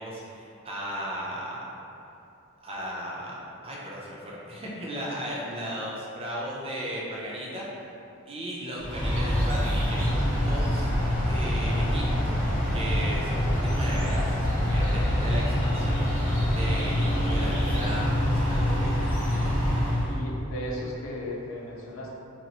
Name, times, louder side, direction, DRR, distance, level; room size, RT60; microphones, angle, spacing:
voice 1, 0.0-1.7 2.6-3.4 3.6-7.7 8.3-10.9 11.2-12.3 12.7-16.1 16.5-18.9, equal, 25° right, -5 dB, 0.5 m, -36 dB
sound 1, 8.8-20.2, equal, 10° left, 0.7 m, -25 dB
voice 2, 20.1-22.1, left 1 dB, 65° left, -4 dB, 0.6 m, -36 dB
2.8 x 2.0 x 4.0 m, 2.7 s
head